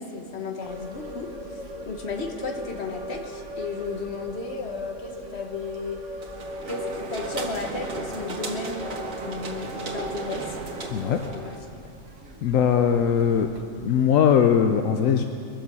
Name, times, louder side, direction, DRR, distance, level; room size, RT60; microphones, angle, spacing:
voice 1, 0.0-1.6 1.8-6.0 6.6-10.6 11.3-11.6, left 4 dB, 55° left, 3 dB, 1.6 m, -34 dB
sound 1, 0.6-13.6, equal, 65° right, 1.4 m, -40 dB
sound 2, 6.2-11.7, right 3 dB, 85° right, 2.0 m, -35 dB
voice 2, 10.9-11.2 12.4-13.5 13.8-15.2, left 8 dB, 80° left, 6 dB, 1.1 m, -20 dB
23.0 x 7.8 x 6.9 m, 2.4 s
omnidirectional pair, 1.4 m